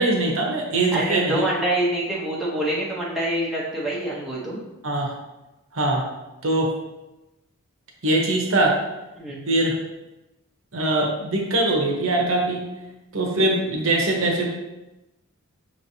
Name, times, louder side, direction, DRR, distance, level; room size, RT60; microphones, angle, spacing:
voice 1, 0.0-1.5 4.8-5.1 5.7-6.0 6.4-6.7 8.0-8.7 9.5-9.8 10.7-12.6 13.1-14.4, right 2 dB, 60° right, 0 dB, 0.9 m, -22 dB
voice 2, 0.9-4.6 9.2-9.4, right 1 dB, ahead, -7 dB, 0.7 m, -26 dB
5.8 x 3.1 x 2.7 m, 0.99 s
head